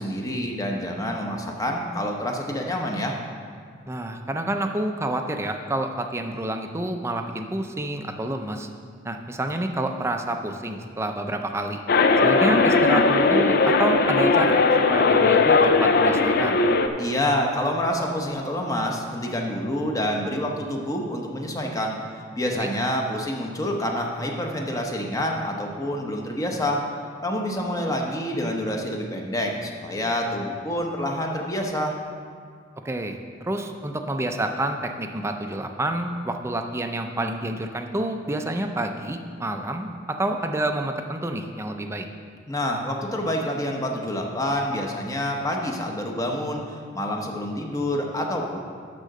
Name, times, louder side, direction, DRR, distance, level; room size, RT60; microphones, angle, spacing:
voice 1, 0.0-3.2 17.0-26.8 27.2-32.0 42.5-48.6, left 1 dB, 20° left, 1 dB, 0.9 m, -27 dB
voice 2, 3.9-8.7 9.0-11.8 12.2-14.6 14.9-16.6 22.5-22.7 32.8-33.2 33.4-42.1, right 1 dB, 15° right, 5 dB, 0.5 m, -28 dB
sound 1, 11.9-16.9, left 3 dB, 55° left, 0.5 m, -18 dB
11.5 x 3.8 x 6.5 m, 2.1 s
head